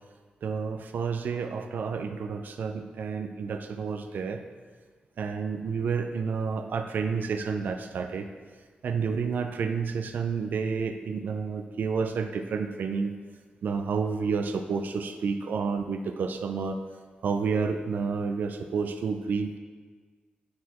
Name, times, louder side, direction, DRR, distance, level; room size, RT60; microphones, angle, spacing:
voice 1, 0.4-4.4 5.2-8.3 8.8-13.1 13.6-16.8 17.2-19.6, right 5 dB, 70° right, 7 dB, 0.3 m, -30 dB
9.3 x 4.2 x 3.0 m, 1.5 s
wide cardioid pair, 140°, 3 cm